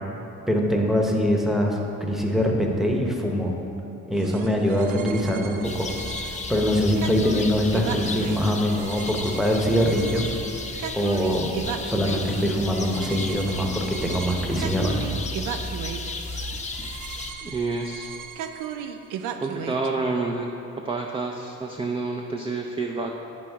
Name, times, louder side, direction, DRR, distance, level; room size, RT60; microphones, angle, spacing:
voice 1, 0.5-3.5 4.1-5.9 6.3-10.3 10.9-11.5 11.8-15.0, equal, ahead, 0 dB, 1.0 m, -23 dB
sound 1, 4.2-19.9, right 8 dB, 90° right, 0.5 m, -36 dB
sound 2, 5.6-17.3, left 3 dB, 25° left, 0.6 m, -34 dB
voice 2, 17.4-18.1 19.4-20.5 20.8-23.1, right 3 dB, 20° right, 1 dB, 0.5 m, -28 dB
8.6 x 6.1 x 3.5 m, 2.9 s
cardioid pair, 90°, 30 cm